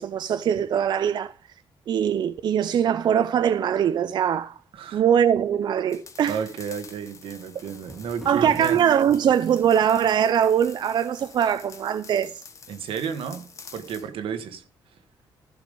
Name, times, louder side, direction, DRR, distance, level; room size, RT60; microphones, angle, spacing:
voice 1, 0.0-1.3 1.9-4.6 4.9-6.4 8.3-12.3, right 9 dB, 55° right, 0.4 m, -22 dB
sound 1, 5.9-14.1, left 5 dB, 35° left, 1.3 m, -47 dB
voice 2, 6.2-8.8 12.7-14.6, right 7 dB, 90° right, 1.3 m, -32 dB
Thunder, 7.0-12.0 12.7-13.2 13.5-13.6, equal, ahead, 1.3 m, -47 dB
14.5 x 5.1 x 5.3 m
cardioid pair, 135°, 9 cm